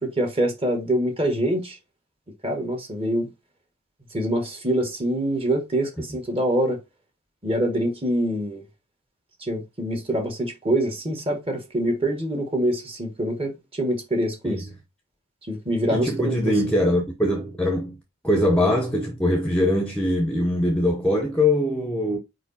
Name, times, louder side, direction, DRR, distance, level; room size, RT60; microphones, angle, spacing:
voice 1, 0.0-1.8 2.4-3.3 4.1-6.8 7.4-8.6 9.4-14.6 15.5-16.5, right 1 dB, 25° right, 1.6 m, -25 dB
voice 2, 15.9-18.0 18.2-22.2, left 1 dB, 5° left, 0.9 m, -22 dB
4.9 x 4.9 x 4.2 m
head